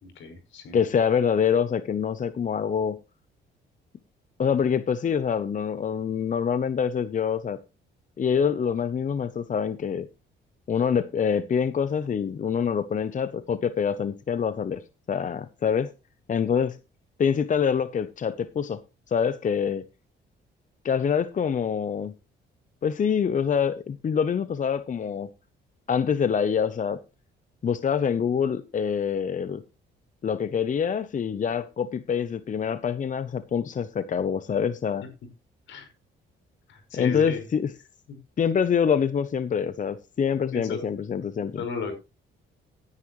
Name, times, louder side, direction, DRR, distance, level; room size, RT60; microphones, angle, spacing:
voice 1, 0.0-0.8 35.7-35.9 36.7-37.4 40.5-40.9 41.6-41.9, left 5 dB, 75° left, 6 dB, 5.3 m, -35 dB
voice 2, 0.7-3.0 4.4-7.6 8.2-10.1 10.7-14.8 15.1-15.9 16.3-16.8 17.2-18.8 19.1-19.8 20.8-22.1 22.8-25.3 25.9-27.0 27.6-29.6 30.2-35.1 36.9-37.7 38.4-41.6, left 7 dB, 40° left, 14 dB, 0.7 m, -25 dB
16.0 x 9.7 x 3.2 m, 0.28 s
cardioid pair, 90°, 20 cm